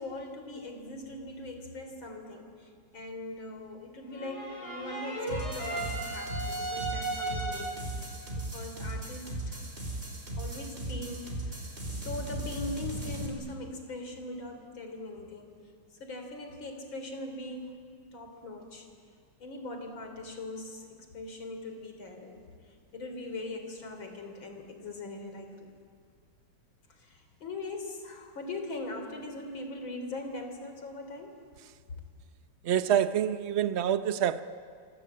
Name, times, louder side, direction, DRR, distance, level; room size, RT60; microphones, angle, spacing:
voice 1, 0.0-9.6 10.4-15.5 15.9-18.9 19.4-25.7 26.9-31.4, left 2 dB, 65° left, 4.2 m, -41 dB
sound 1, 4.1-8.0, right 2 dB, 30° left, 7.5 m, -36 dB
sound 2, 5.3-13.3, right 1 dB, 25° right, 4.8 m, -37 dB
voice 2, 32.6-34.4, right 9 dB, 60° right, 0.6 m, -26 dB
27.0 x 25.0 x 8.7 m
omnidirectional pair, 2.3 m